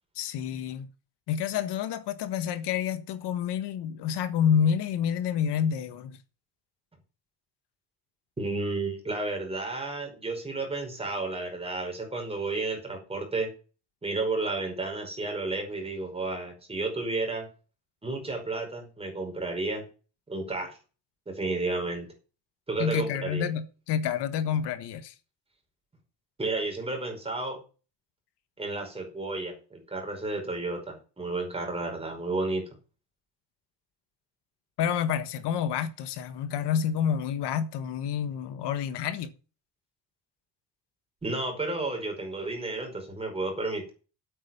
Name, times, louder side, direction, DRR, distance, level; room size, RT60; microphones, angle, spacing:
voice 1, 0.1-0.8 1.3-6.2 22.8-25.1 34.8-39.3, left 8 dB, 75° left, 1.5 m, -28 dB
voice 2, 8.4-13.5 14.0-17.5 18.0-19.8 20.3-20.7 21.3-22.1 22.7-23.4 26.4-27.6 28.6-32.6 41.2-43.9, right 3 dB, 15° right, 5.1 m, -32 dB
8.8 x 8.8 x 7.1 m
cardioid pair, 150°, 41 cm